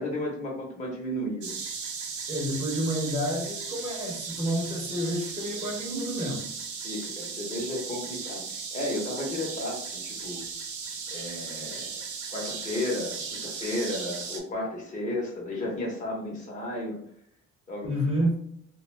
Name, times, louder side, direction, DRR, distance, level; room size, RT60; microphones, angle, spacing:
voice 1, 0.0-1.5 6.8-10.4 11.1-12.0 12.3-17.0 17.7-17.9, left 1 dB, 25° left, -2 dB, 0.8 m, -33 dB
sound 1, 1.4-14.4, right 5 dB, 75° right, 0.6 m, -36 dB
voice 2, 2.3-6.5 17.8-18.4, equal, 20° right, -2 dB, 0.8 m, -29 dB
2.2 x 2.2 x 3.1 m, 0.68 s
cardioid pair, 90°, 30 cm